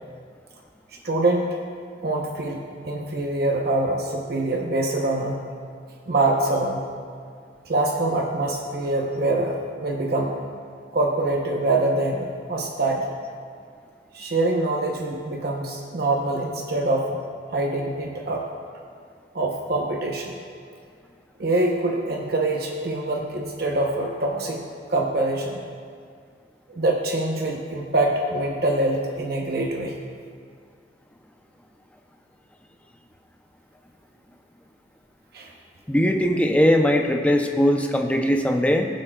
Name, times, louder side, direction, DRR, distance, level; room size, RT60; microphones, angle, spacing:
voice 1, 1.0-1.5 2.0-5.4 6.1-6.9 7.6-10.3 10.9-13.1 14.1-17.2 17.5-18.4 19.3-20.3 21.4-24.6 24.9-25.6 26.7-29.9 35.3-35.5, right 2 dB, 55° right, 0 dB, 0.8 m, -24 dB
voice 2, 35.9-38.9, equal, 5° left, 3 dB, 0.6 m, -20 dB
20.5 x 7.4 x 2.3 m, 2.2 s
head